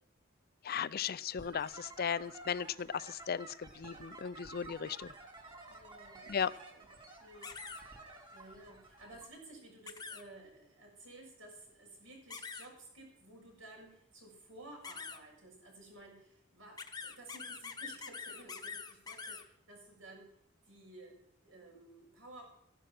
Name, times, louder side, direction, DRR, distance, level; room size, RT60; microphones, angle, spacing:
voice 1, 0.6-5.1 6.3-6.5, left 7 dB, 50° left, 17 dB, 0.5 m, -36 dB
sound 1, 1.4-9.3, right 2 dB, 25° right, 3.1 m, -52 dB
voice 2, 5.7-6.9 7.2-20.3 20.7-22.4, right 2 dB, 80° right, 0 dB, 7.0 m, -55 dB
sound 2, 7.4-7.8 9.9-10.2 12.3-12.7 14.8-15.2 16.8-19.4, left 5 dB, 20° left, 1.0 m, -44 dB
15.0 x 11.5 x 6.0 m, 0.71 s
head